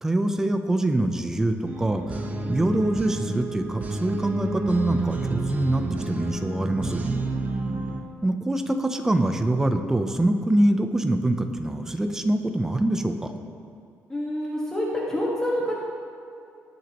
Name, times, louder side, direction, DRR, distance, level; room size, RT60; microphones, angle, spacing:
voice 1, 0.0-7.0 8.2-13.3, right 1 dB, 10° right, 6 dB, 0.6 m, -24 dB
sound 1, 1.7-8.0, right 2 dB, 30° right, 0.9 m, -29 dB
voice 2, 14.1-15.7, left 1 dB, 10° left, -6 dB, 1.6 m, -27 dB
20.0 x 8.2 x 3.0 m, 2.6 s
cardioid pair, 160°, 5 cm